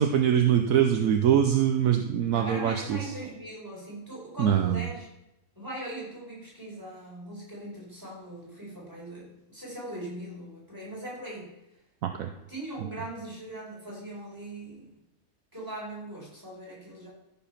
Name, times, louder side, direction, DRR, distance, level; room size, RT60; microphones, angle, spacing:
voice 1, 0.0-3.1 4.4-4.9 12.0-12.3, right 9 dB, 70° right, 6 dB, 1.1 m, -23 dB
voice 2, 2.3-5.1 5.6-11.5 12.5-14.9 15.5-17.1, right 1 dB, 15° right, -5 dB, 4.6 m, -40 dB
14.0 x 6.0 x 5.8 m, 0.90 s
omnidirectional pair, 1.6 m